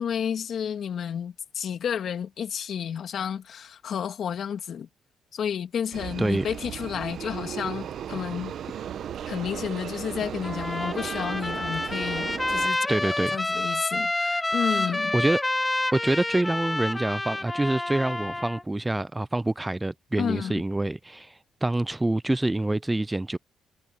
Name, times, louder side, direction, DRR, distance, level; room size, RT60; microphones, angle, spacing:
voice 1, 0.0-4.9 5.3-8.9 9.3-15.1 20.2-20.6, left 8 dB, 60° left, 2.5 m, -31 dB
sound 1, 5.9-12.7, right 9 dB, 65° right, 1.0 m, -36 dB
Trumpet, 10.4-18.6, left 2 dB, 15° left, 1.9 m, -28 dB
voice 2, 12.9-13.4 15.1-15.4 15.9-23.4, right 2 dB, 15° right, 0.4 m, -26 dB
cardioid pair, 90°, 0 cm